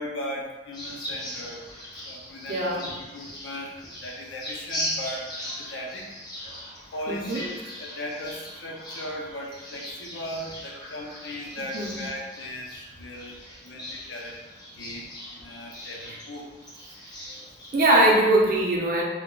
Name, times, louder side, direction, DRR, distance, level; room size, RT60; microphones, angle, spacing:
voice 1, 0.0-1.6 2.1-2.9 3.1-3.8 4.0-6.1 6.9-12.7 13.0-13.4 13.7-14.4 14.8-15.1 15.4-16.5, left 1 dB, 80° left, -1 dB, 0.6 m, -37 dB
sound 1, 0.7-17.9, left 1 dB, 25° left, 0.6 m, -39 dB
voice 2, 2.5-2.8 7.1-7.4 11.7-12.0 17.7-19.0, right 1 dB, 50° right, -3 dB, 0.6 m, -21 dB
2.3 x 2.1 x 3.6 m, 1.2 s
head